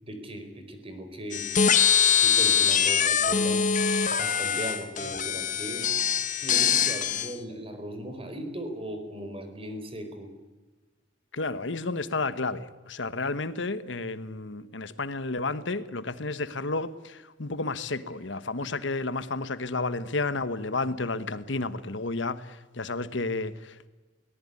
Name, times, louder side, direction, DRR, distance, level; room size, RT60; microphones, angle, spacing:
voice 1, 0.0-1.5 2.2-3.6 4.1-5.9 6.4-10.3, right 1 dB, 30° right, 4.6 m, -38 dB
sound 1, 1.3-7.3, left 7 dB, 45° left, 1.5 m, -23 dB
voice 2, 11.3-23.9, left 3 dB, 75° left, 1.2 m, -31 dB
22.5 x 18.5 x 9.7 m
head